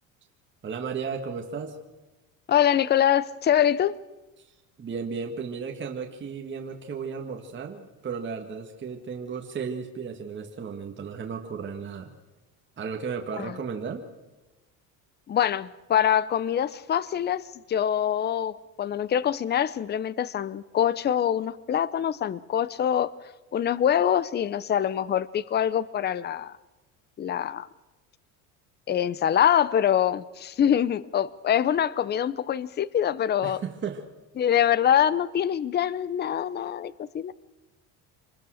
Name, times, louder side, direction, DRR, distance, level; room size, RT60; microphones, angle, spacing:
voice 1, 0.6-1.8 4.4-4.5 4.8-12.1 12.8-14.0 33.4-34.0, right 6 dB, 30° right, 2 dB, 1.9 m, -34 dB
voice 2, 2.5-4.0 13.4-13.6 15.3-23.1 23.5-26.5 27.2-27.7 28.9-33.6 34.4-37.3, left 9 dB, 30° left, 19 dB, 0.7 m, -24 dB
26.5 x 20.0 x 6.4 m, 1.1 s
cardioid pair, 130°, 37 cm